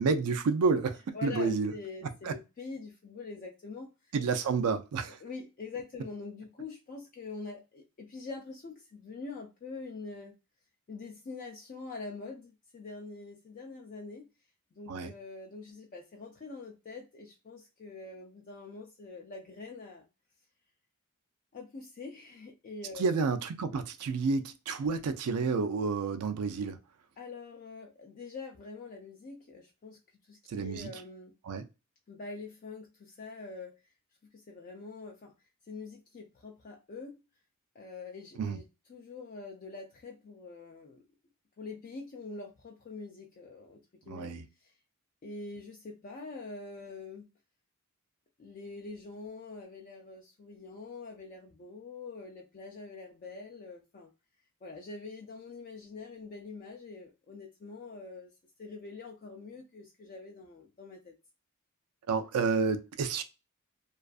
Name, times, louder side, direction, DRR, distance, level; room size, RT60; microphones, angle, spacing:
voice 1, 0.0-1.7 2.2-2.3 4.1-5.2 14.9-15.1 23.0-26.8 30.5-30.9 31.4-31.7 38.4-38.6 44.1-44.5 62.1-63.2, right 4 dB, 80° right, 0.4 m, -30 dB
voice 2, 1.1-3.9 5.2-10.3 10.9-14.3 14.7-20.1 21.5-23.1 27.2-30.0 30.3-31.3 32.1-33.7 34.5-35.3 35.7-37.2 37.8-38.6 38.9-41.0 41.6-43.8 44.1-44.3 45.2-47.3 48.4-54.1 54.6-58.3 58.6-61.1, left 3 dB, 40° left, 0.4 m, -44 dB
2.4 x 2.4 x 2.3 m
head